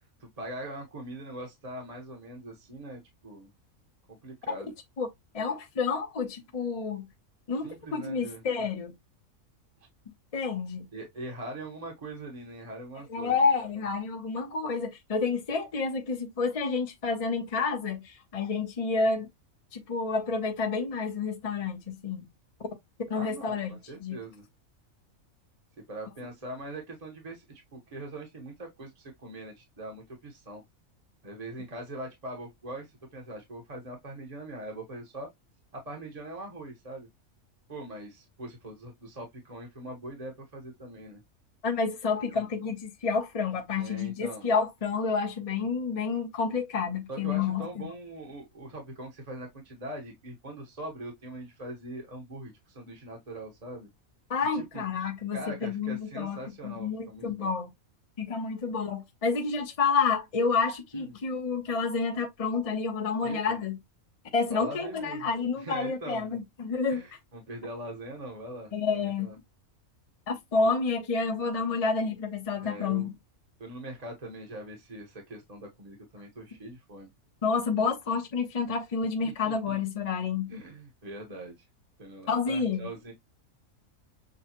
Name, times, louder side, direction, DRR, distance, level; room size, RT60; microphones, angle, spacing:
voice 1, 0.2-3.5 4.2-4.7 7.6-8.4 10.9-13.7 23.1-24.4 25.9-30.6 31.2-35.3 35.7-37.1 37.7-41.2 42.3-42.5 43.8-44.5 47.1-53.9 54.5-54.8 55.3-57.5 60.9-61.1 63.2-63.6 64.5-65.3 65.6-66.4 66.9-69.3 72.6-73.1 73.6-77.1 79.2-79.7 80.5-81.7 82.0-83.1, right 1 dB, 30° right, 1.1 m, -42 dB
voice 2, 5.3-7.1 7.5-8.9 10.3-10.9 13.1-19.3 19.7-22.2 23.1-24.2 41.6-47.9 54.3-57.7 58.2-63.8 64.3-67.0 68.7-69.3 70.3-73.1 77.4-80.5 82.3-82.9, left 4 dB, 30° left, 0.8 m, -29 dB
6.3 x 2.3 x 2.9 m
omnidirectional pair, 1.5 m